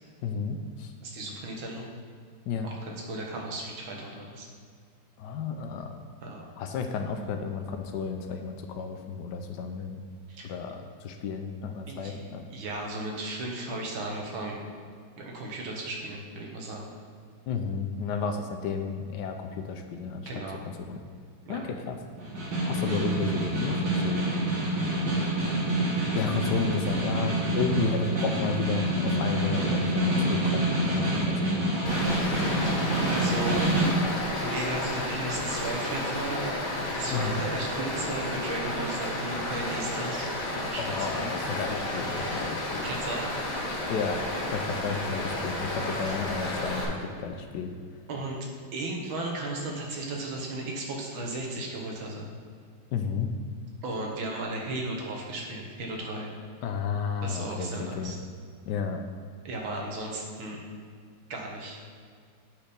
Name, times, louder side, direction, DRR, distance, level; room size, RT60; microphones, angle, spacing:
voice 1, 0.2-0.9 2.5-2.7 5.2-5.9 6.6-10.0 10.4-12.4 17.5-20.3 20.9-21.0 21.5-22.0 22.7-24.3 26.1-31.7 37.1-37.4 40.8-42.8 43.9-44.2 44.5-47.7 52.9-53.3 56.6-58.1 58.7-59.0, left 5 dB, 70° left, 5 dB, 1.1 m, -32 dB
voice 2, 1.0-1.9 2.6-4.5 6.2-6.4 10.3-10.5 11.9-14.6 15.2-16.9 20.3-20.6 21.5-21.7 22.4-22.6 22.8-23.0 32.1-32.2 33.1-33.6 34.4-36.4 36.9-40.3 40.5-41.3 42.8-43.3 44.8-45.0 48.1-48.4 48.7-52.3 53.8-56.3 57.2-58.2 59.4-60.6 61.3-61.8, right 2 dB, 85° right, 0 dB, 2.0 m, -35 dB
Snare drum, 22.2-34.0, right 1 dB, 60° right, 2.2 m, -27 dB
Stream, 31.8-46.8, left 1 dB, 50° left, 1.9 m, -32 dB
8.2 x 4.4 x 5.1 m, 2.1 s
omnidirectional pair, 2.1 m